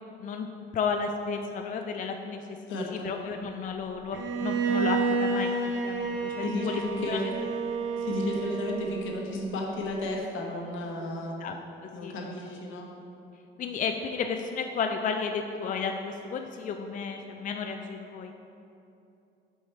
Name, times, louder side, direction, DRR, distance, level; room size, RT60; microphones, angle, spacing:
voice 1, 0.7-2.4 2.9-5.5 5.8-7.2 11.4-11.6 12.0-12.3 13.6-18.3, left 5 dB, 40° left, 4 dB, 0.4 m, -32 dB
voice 2, 2.7-3.1 6.4-7.3 8.0-11.4 11.9-12.9, left 2 dB, 80° left, 0 dB, 1.0 m, -33 dB
Bowed string instrument, 4.1-9.1, right 4 dB, 75° right, 0.7 m, -30 dB
5.6 x 4.7 x 4.3 m, 2.8 s
cardioid pair, 90°, 20 cm